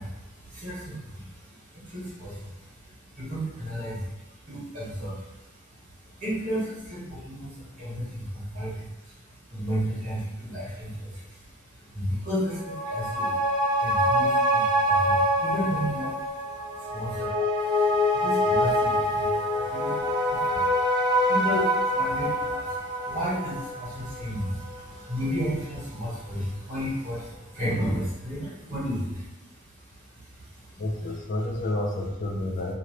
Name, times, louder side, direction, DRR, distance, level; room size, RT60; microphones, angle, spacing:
voice 1, 0.0-17.3 17.6-30.8, equal, 40° right, -8 dB, 1.5 m, -34 dB
sound 1, 12.5-25.4 25.7-25.8, equal, 20° right, 0.5 m, -25 dB
voice 2, 30.8-32.7, left 1 dB, 40° left, 0 dB, 0.4 m, -29 dB
2.9 x 2.5 x 3.2 m, 0.96 s
head